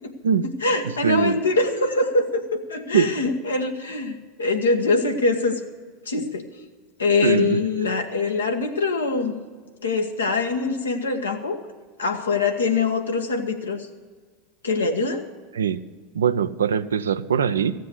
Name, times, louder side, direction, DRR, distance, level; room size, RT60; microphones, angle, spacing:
voice 1, 0.4-5.6 6.0-6.4 7.0-9.3 9.8-11.6 12.0-13.9 14.6-15.3, left 3 dB, 90° left, 3 dB, 1.3 m, -23 dB
voice 2, 1.0-1.4 2.9-3.1 7.2-7.6 15.6-15.8 16.1-17.7, right 7 dB, 85° right, 11 dB, 0.5 m, -21 dB
15.0 x 7.6 x 8.1 m, 1.5 s
hypercardioid pair, 90°, 0 cm